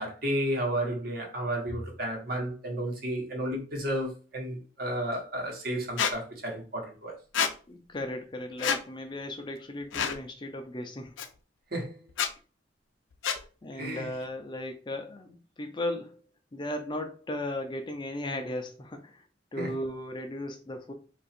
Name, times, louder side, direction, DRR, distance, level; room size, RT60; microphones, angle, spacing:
voice 1, 0.0-7.1 11.7-12.0 13.8-14.1 19.6-19.7, right 1 dB, 50° right, 1.1 m, -32 dB
Squeak, 6.0-6.1 7.3-7.5 8.6-8.8 9.9-10.2 11.2-11.3 12.1-12.3 13.2-13.4, left 7 dB, 85° left, 0.5 m, -27 dB
voice 2, 7.7-11.1 13.4-16.2 16.5-19.3 19.5-20.9, left 1 dB, 25° left, 0.5 m, -36 dB
2.9 x 2.5 x 4.3 m
head